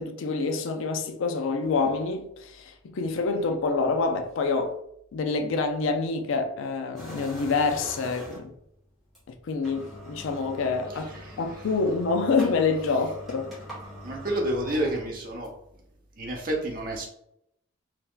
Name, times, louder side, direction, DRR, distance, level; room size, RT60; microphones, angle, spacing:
voice 1, 0.0-4.8 5.1-8.5 9.3-13.5, left 4 dB, 85° left, 0.4 m, -27 dB
sound 1, 6.9-8.6 9.1-9.2 9.5-15.7, equal, ahead, 1.0 m, -43 dB
voice 2, 11.1-11.4 14.0-15.5 16.2-17.0, right 1 dB, 45° right, 0.7 m, -29 dB
2.8 x 2.4 x 3.6 m
head